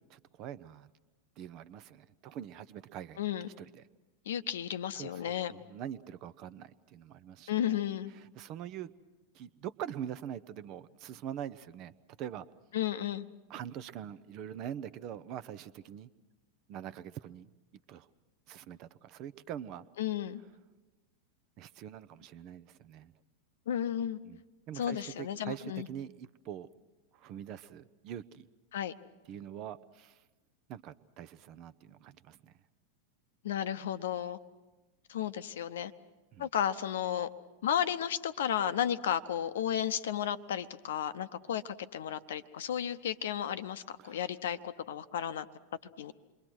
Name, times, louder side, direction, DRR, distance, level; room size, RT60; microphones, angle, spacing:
voice 1, 0.1-0.9 1.4-3.2 3.4-3.8 4.9-7.7 8.1-8.9 9.3-11.9 12.2-12.5 13.5-16.1 16.7-17.5 17.9-18.1 18.5-19.8 21.6-23.1 24.2-24.4 24.7-26.7 27.1-28.5 29.3-30.2 30.7-32.5 36.3-36.5 44.0-44.2, right 10 dB, 40° right, 16 dB, 0.7 m, -44 dB
voice 2, 3.2-3.5 4.3-5.5 7.5-8.1 12.7-13.3 20.0-20.4 23.7-24.2 24.8-25.9 28.7-28.9 33.4-34.4 35.1-35.9 36.4-37.3 37.6-45.4 46.0-46.1, left 10 dB, 60° left, 13 dB, 0.8 m, -33 dB
28.0 x 22.5 x 6.2 m, 1.2 s
figure-of-eight pair, 90°, 0 cm